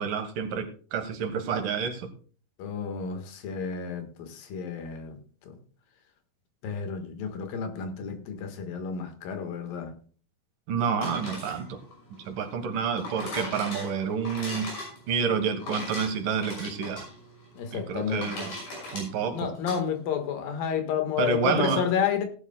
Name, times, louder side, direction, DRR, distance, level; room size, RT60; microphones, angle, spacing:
voice 1, 0.0-2.1 10.7-11.8 12.3-14.7 15.1-17.1 17.7-18.5 18.9-19.5 21.2-21.8, right 6 dB, 75° right, 6 dB, 3.0 m, -29 dB
voice 2, 2.6-5.2 5.4-5.5 6.6-9.9 17.6-18.3 19.3-22.3, left 7 dB, 85° left, 6 dB, 3.3 m, -30 dB
sound 1, 10.8-19.8, left 2 dB, 65° left, 7.6 m, -39 dB
18.0 x 11.0 x 2.2 m, 0.42 s
omnidirectional pair, 3.9 m